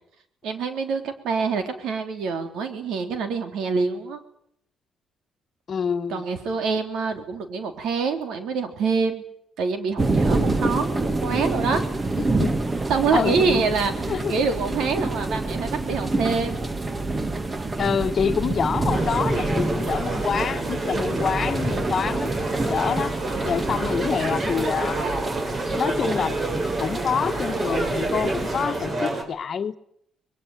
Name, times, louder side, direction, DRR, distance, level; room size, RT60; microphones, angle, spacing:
voice 1, 0.4-4.2 6.1-9.2 9.6-11.8 12.9-13.9 14.3-16.6, right 5 dB, 80° right, 3.5 m, -26 dB
voice 2, 5.7-6.2 12.2-12.6 13.1-13.6 14.1-14.3 17.8-22.3 22.6-23.2 23.4-25.0 25.7-26.4 26.8-29.8, left 7 dB, 50° left, 1.3 m, -26 dB
sound 1, 10.0-28.9, right 2 dB, 25° right, 1.6 m, -27 dB
sound 2, 18.9-29.2, right 2 dB, 45° right, 5.4 m, -28 dB
22.0 x 22.0 x 9.4 m
cardioid pair, 90°, 0 cm